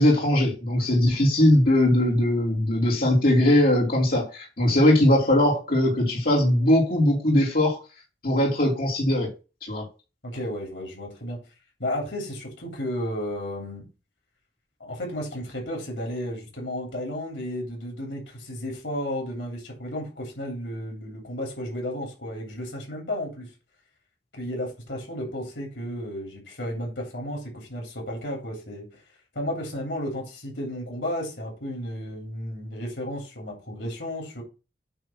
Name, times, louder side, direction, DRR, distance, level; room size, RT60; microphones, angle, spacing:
voice 1, 0.0-7.8 8.2-9.3 9.6-9.8, left 1 dB, 55° left, 3.0 m, -20 dB
voice 2, 10.2-11.4 11.8-13.8 14.8-23.5 24.3-29.0 29.3-34.4, left 1 dB, 80° left, 3.2 m, -33 dB
8.9 x 3.4 x 6.3 m
head